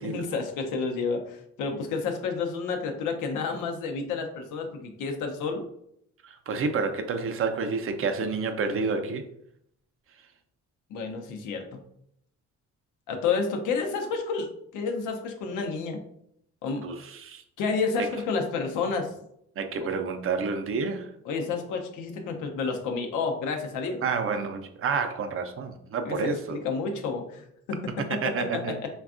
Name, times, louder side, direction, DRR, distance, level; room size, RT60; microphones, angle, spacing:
voice 1, 0.0-5.7 10.9-11.8 13.1-16.0 16.6-16.9 17.6-19.1 21.3-24.0 26.0-28.9, left 4 dB, 90° left, 3 dB, 0.6 m, -30 dB
voice 2, 6.2-9.3 16.8-17.4 18.0-18.1 19.6-21.1 24.0-26.6 28.0-28.8, right 4 dB, 45° right, 7 dB, 0.4 m, -29 dB
3.4 x 2.2 x 2.4 m, 0.73 s
cardioid pair, 90°, 30 cm